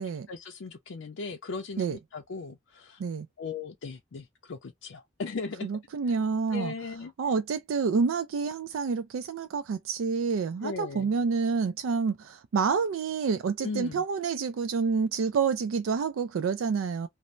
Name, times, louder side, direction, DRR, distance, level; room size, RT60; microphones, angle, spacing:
voice 1, 0.3-3.0 3.4-5.7 6.5-7.1 10.6-11.1 13.6-14.0, left 4 dB, 80° left, 0.5 m, -37 dB
voice 2, 5.6-6.7 7.2-17.1, right 5 dB, 90° right, 0.3 m, -28 dB
2.6 x 2.0 x 3.0 m
head